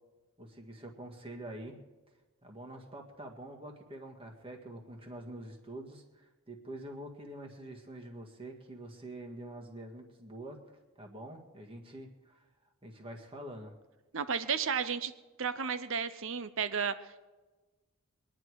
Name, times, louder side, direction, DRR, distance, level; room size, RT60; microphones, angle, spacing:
voice 1, 0.4-1.8 2.4-10.6 11.0-12.4 12.8-13.7, right 1 dB, 25° right, 1 dB, 1.8 m, -46 dB
voice 2, 14.1-15.1 15.4-16.9, right 6 dB, 60° right, 13 dB, 0.8 m, -32 dB
23.5 x 10.5 x 4.8 m, 1.2 s
head